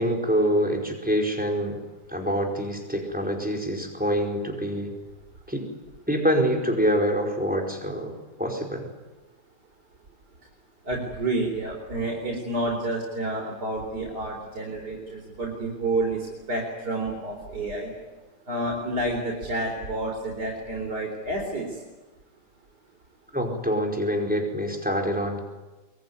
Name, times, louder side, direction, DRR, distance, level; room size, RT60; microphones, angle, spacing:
voice 1, 0.0-1.8 2.1-4.9 5.5-5.7 6.1-8.1 8.4-8.9 23.3-25.4, equal, 5° right, 2 dB, 4.9 m, -25 dB
voice 2, 10.8-17.9 18.5-21.8, right 2 dB, 70° right, -1 dB, 4.7 m, -29 dB
23.0 x 22.0 x 9.7 m, 1.2 s
omnidirectional pair, 1.8 m